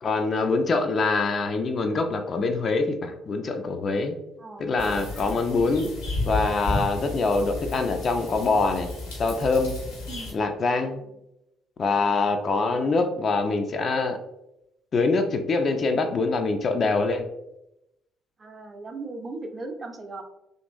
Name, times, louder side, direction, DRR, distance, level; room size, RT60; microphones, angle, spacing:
voice 1, 0.0-4.2 4.6-5.9 6.2-8.9 9.2-9.8 10.3-11.0 11.8-14.2 14.9-17.3, left 3 dB, 40° left, 6 dB, 0.3 m, -24 dB
sound 1, 4.8-10.3, left 2 dB, 75° left, 0.8 m, -32 dB
voice 2, 10.1-10.4 12.6-13.1 18.4-20.2, right 3 dB, 30° right, 4 dB, 0.5 m, -38 dB
2.9 x 2.5 x 2.5 m, 0.87 s
figure-of-eight pair, 45°, 0 cm